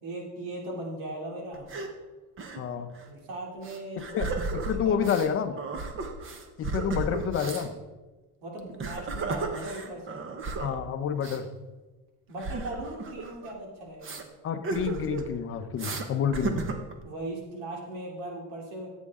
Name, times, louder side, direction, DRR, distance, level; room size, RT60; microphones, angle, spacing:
voice 1, 0.0-1.6 3.0-4.0 4.8-5.0 8.4-10.2 12.3-14.2 17.0-18.9, right 1 dB, 75° right, -1 dB, 3.1 m, -38 dB
sound 1, 1.5-1.9 2.4-2.6 2.9-3.0 3.6-5.3 5.6-7.7 8.6-10.8 11.2-11.4 12.4-13.5 14.0-14.2 14.6-15.3 15.8-16.1 16.3-17.0, right 3 dB, 30° right, 1.1 m, -34 dB
voice 2, 2.6-2.9 4.0-5.6 6.6-7.7 10.6-11.5 14.4-16.7, left 7 dB, 30° left, 9 dB, 0.7 m, -29 dB
15.0 x 8.2 x 3.7 m, 1.2 s
cardioid pair, 155°, 42 cm